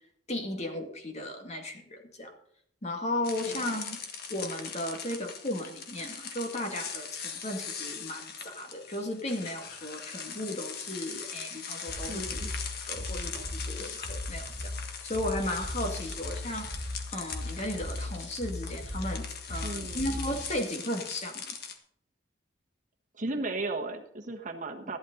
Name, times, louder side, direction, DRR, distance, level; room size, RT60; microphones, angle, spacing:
voice 1, 0.3-2.3 2.8-4.0 4.3-12.4 12.8-16.7 17.1-21.5, left 1 dB, 35° left, 3 dB, 2.1 m, -35 dB
sound 1, 3.2-21.8, left 6 dB, 55° left, 1.6 m, -41 dB
voice 2, 3.5-3.8 12.1-12.5 19.6-20.2 23.1-25.0, right 2 dB, 40° right, 3 dB, 1.3 m, -36 dB
sound 2, 11.9-20.6, left 1 dB, 75° left, 3.1 m, -38 dB
13.5 x 11.5 x 3.9 m, 0.68 s
head